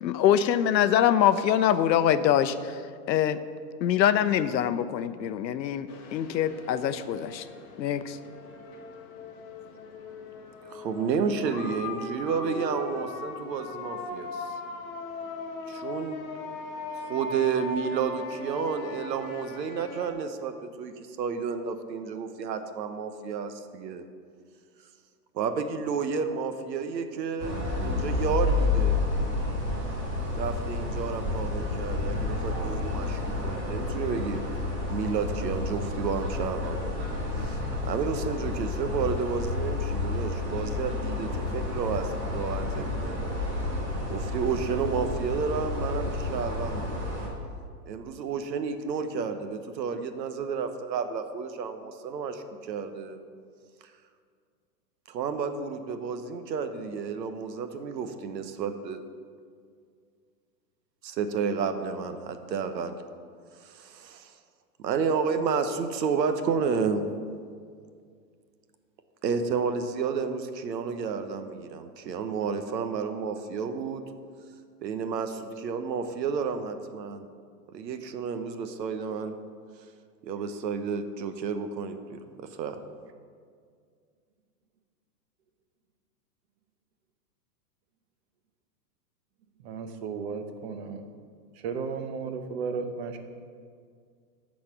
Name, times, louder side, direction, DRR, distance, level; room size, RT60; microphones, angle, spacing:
voice 1, 0.0-3.4 3.8-7.5 7.8-8.2, left 10 dB, 85° left, 13 dB, 0.7 m, -24 dB
sound 1, 5.9-20.1, left 3 dB, 25° left, 1.0 m, -39 dB
voice 2, 10.7-14.5 15.7-16.2 16.9-24.0 25.3-29.0 30.4-34.4 34.9-36.9 37.3-43.2 44.1-46.9 47.9-53.2 55.1-59.0 61.0-63.0 63.6-64.3 64.8-67.0 69.2-74.0 74.8-77.3 77.7-79.3 80.2-82.8, right 6 dB, 80° right, 9 dB, 1.0 m, -31 dB
sound 2, 27.4-47.3, left 2 dB, 25° right, 2.2 m, -30 dB
voice 3, 89.6-91.1 91.6-93.2, right 5 dB, 40° right, 8 dB, 0.8 m, -34 dB
12.5 x 4.2 x 5.9 m, 2.1 s
hypercardioid pair, 150°, 50 cm